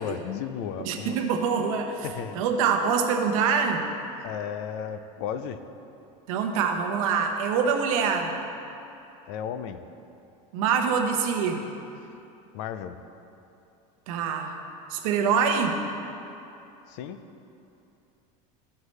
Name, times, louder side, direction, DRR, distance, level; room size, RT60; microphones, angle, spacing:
voice 1, 0.0-1.2 2.0-2.4 4.2-5.6 9.3-9.8 12.5-13.0 16.9-17.2, left 8 dB, 60° left, 10 dB, 0.4 m, -34 dB
voice 2, 0.8-2.0 2.3-3.9 6.3-8.4 10.5-11.6 14.1-14.5 14.9-15.8, right 6 dB, 80° right, 4 dB, 0.9 m, -25 dB
13.5 x 4.7 x 3.2 m, 2.8 s
cardioid pair, 175°, 17 cm